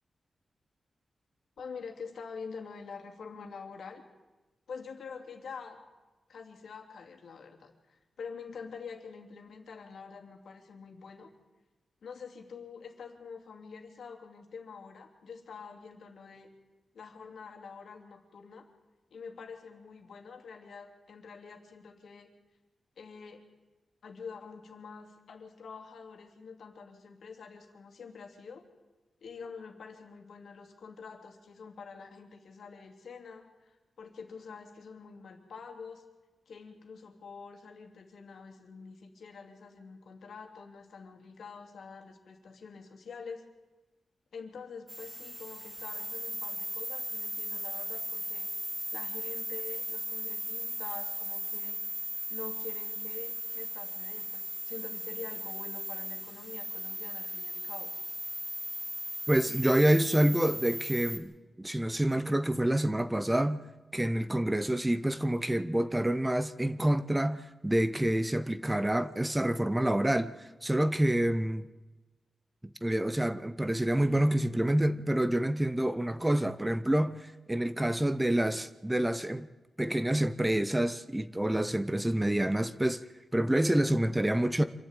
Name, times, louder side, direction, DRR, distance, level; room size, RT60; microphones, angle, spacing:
voice 1, 1.6-4.0 4.7-5.8 6.3-11.3 12.0-16.5 16.9-18.7 19.1-22.3 23.0-23.4 24.0-28.6 29.2-36.0 36.5-43.5 44.3-48.5 48.9-52.0 52.3-57.9, left 5 dB, 80° left, 2.7 m, -46 dB
sound 1, 44.9-61.2, right 1 dB, 25° right, 2.4 m, -37 dB
voice 2, 59.3-61.3 61.6-63.6 63.9-71.7 72.6-79.5 79.8-83.0 83.3-84.6, right 1 dB, 10° right, 0.7 m, -27 dB
26.0 x 11.5 x 9.0 m
wide cardioid pair, 115°, 0 cm